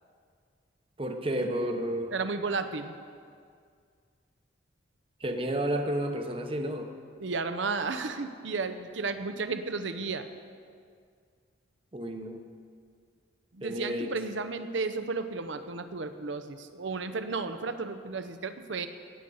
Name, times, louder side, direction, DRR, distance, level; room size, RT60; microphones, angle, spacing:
voice 1, 1.0-2.1 5.2-6.9 11.9-12.4 13.6-14.1, right 1 dB, 30° right, 5 dB, 0.9 m, -31 dB
voice 2, 2.1-3.0 7.1-10.3 13.5-18.9, right 4 dB, 75° right, 10 dB, 0.8 m, -33 dB
18.0 x 8.1 x 5.4 m, 2.2 s
head